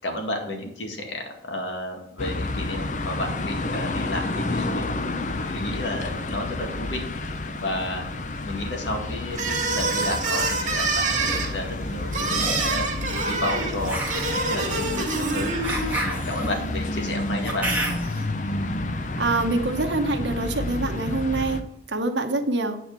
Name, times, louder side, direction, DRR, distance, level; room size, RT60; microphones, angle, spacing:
voice 1, 0.0-4.8 5.4-7.0 7.6-8.1 8.4-13.0 13.2-14.0 14.3-15.5 16.0-17.7, left 1 dB, 70° left, 3 dB, 1.9 m, -32 dB
sound 1, 2.2-21.6, left 2 dB, 40° left, 0.6 m, -30 dB
sound 2, 9.3-15.9, right 3 dB, 40° right, 1.8 m, -26 dB
sound 3, 10.9-11.4 12.3-12.9 13.8-18.2, right 1 dB, 10° right, 1.6 m, -31 dB
voice 2, 19.2-22.8, right 2 dB, 70° right, 4 dB, 1.1 m, -25 dB
9.3 x 4.3 x 6.7 m, 0.80 s
head